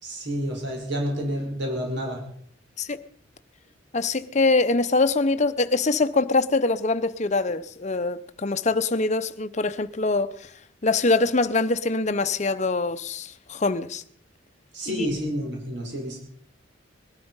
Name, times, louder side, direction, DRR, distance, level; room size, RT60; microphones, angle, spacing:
voice 1, 0.0-2.2 14.7-16.2, equal, 60° right, 5.3 m, -29 dB
voice 2, 3.9-10.5 10.8-14.0 14.9-15.1, left 3 dB, 35° left, 0.8 m, -24 dB
20.0 x 12.5 x 5.6 m
head